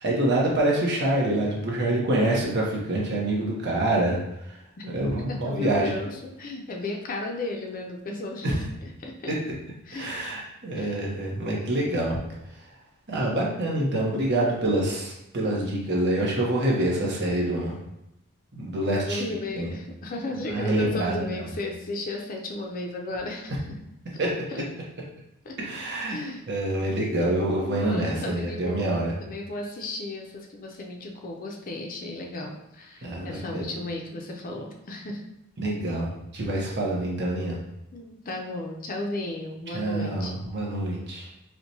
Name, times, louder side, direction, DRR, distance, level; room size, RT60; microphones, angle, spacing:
voice 1, 0.0-4.2 4.8-6.0 8.4-8.5 9.9-12.2 13.1-17.8 18.5-19.7 20.5-21.3 24.2-24.3 25.6-26.2 26.5-29.1 33.0-33.6 35.6-37.6 39.7-41.3, right 1 dB, 55° right, -3 dB, 0.9 m, -26 dB
voice 2, 5.3-9.3 9.8-10.1 10.7-11.1 13.3-13.7 14.1-14.2 18.8-23.6 24.5-24.6 25.4-25.6 26.1-26.4 27.6-28.9 29.2-35.2 37.9-40.3, left 2 dB, 40° left, 1 dB, 0.5 m, -34 dB
4.5 x 2.2 x 2.7 m, 0.85 s
head